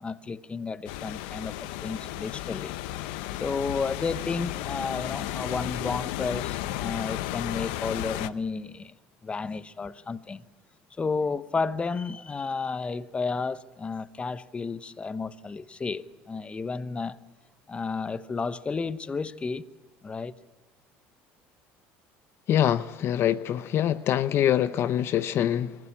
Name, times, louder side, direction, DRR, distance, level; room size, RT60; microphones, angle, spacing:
voice 1, 0.0-2.8 3.4-8.9 9.2-10.4 11.0-17.2 17.7-19.6 20.0-20.3, left 4 dB, 20° left, 0.9 m, -32 dB
sound 1, 0.9-8.3, left 15 dB, 80° left, 0.8 m, -34 dB
voice 2, 22.5-25.8, left 10 dB, 50° left, 0.7 m, -24 dB
25.5 x 15.5 x 8.5 m
supercardioid pair, 105°, 5 cm